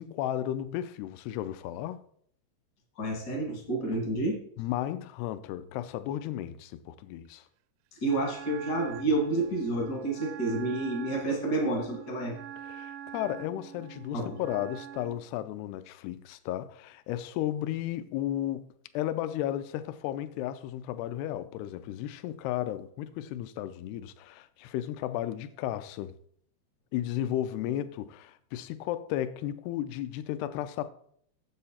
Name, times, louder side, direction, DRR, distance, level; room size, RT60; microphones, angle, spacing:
voice 1, 0.0-2.0 4.6-7.5 12.6-26.1 26.9-30.9, left 12 dB, 90° left, 2.3 m, -34 dB
voice 2, 3.0-4.4 8.0-12.3 14.1-14.4, right 2 dB, 70° left, 0.9 m, -29 dB
Wind instrument woodwind instrument, 8.0-15.3, right 10 dB, 85° right, 2.8 m, -44 dB
7.7 x 7.6 x 4.2 m
omnidirectional pair, 5.2 m